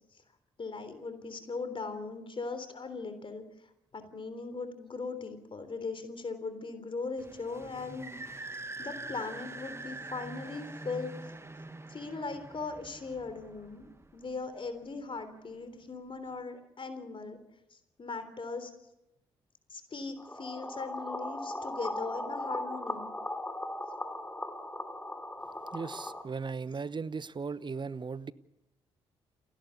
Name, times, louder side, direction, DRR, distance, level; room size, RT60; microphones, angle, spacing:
voice 1, 0.6-3.4 3.9-11.2 11.9-17.4 17.7-18.7 19.7-23.1, left 4 dB, 40° left, 3.5 m, -39 dB
sound 1, 7.2-14.5, right 2 dB, 20° right, 1.6 m, -44 dB
sound 2, 20.2-26.2, left 1 dB, 15° left, 2.8 m, -38 dB
voice 2, 25.7-28.3, right 5 dB, 35° right, 0.9 m, -37 dB
30.0 x 11.5 x 8.3 m
hypercardioid pair, 40°, 14 cm